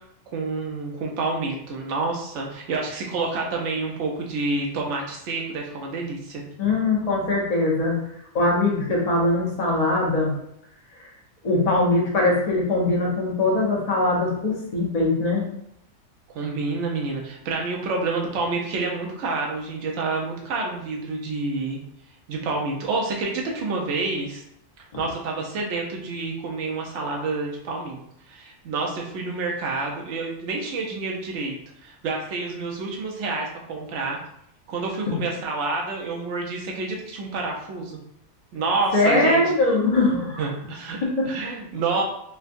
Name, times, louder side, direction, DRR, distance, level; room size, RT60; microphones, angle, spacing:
voice 1, 0.3-6.4 16.3-21.8 22.3-24.4 25.0-28.0 28.3-31.5 31.8-34.2 34.7-38.0 38.5-39.4 40.4-41.0 41.3-42.0, right 3 dB, 65° right, 0 dB, 1.0 m, -28 dB
voice 2, 6.6-8.0 8.3-10.4 11.0-11.1 11.4-15.4 38.9-40.4 41.0-41.3, left 2 dB, 35° left, -3 dB, 0.8 m, -21 dB
4.4 x 2.2 x 2.6 m, 0.75 s
omnidirectional pair, 1.4 m